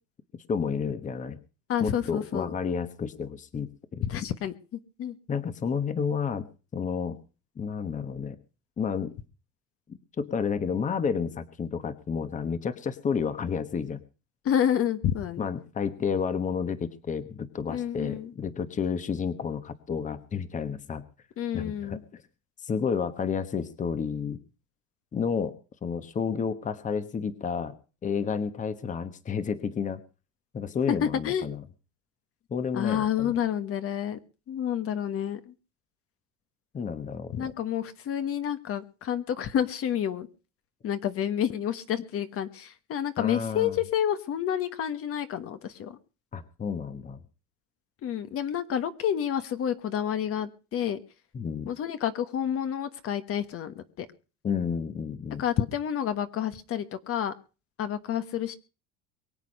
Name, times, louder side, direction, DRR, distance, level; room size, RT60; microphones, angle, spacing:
voice 1, 0.5-1.4 1.8-4.0 5.3-6.5 6.7-7.2 7.6-8.4 8.8-9.1 9.9-14.0 15.4-21.0 21.5-22.2 22.6-24.4 25.1-25.5 25.8-27.7 28.0-30.0 30.5-31.6 32.5-33.3 36.7-37.5 43.2-43.8 46.3-47.2 51.3-51.7 54.4-55.4, left 6 dB, 25° left, 12 dB, 1.2 m, -31 dB
voice 2, 1.7-2.5 4.0-5.2 14.4-15.5 17.7-18.3 21.4-22.0 30.9-31.5 32.7-34.2 34.5-35.5 37.3-40.3 40.8-46.0 48.0-51.0 51.7-54.1 55.4-57.3 57.8-58.5, left 9 dB, 45° left, 10 dB, 1.3 m, -29 dB
23.0 x 8.3 x 5.3 m, 0.35 s
cardioid pair, 140°, 32 cm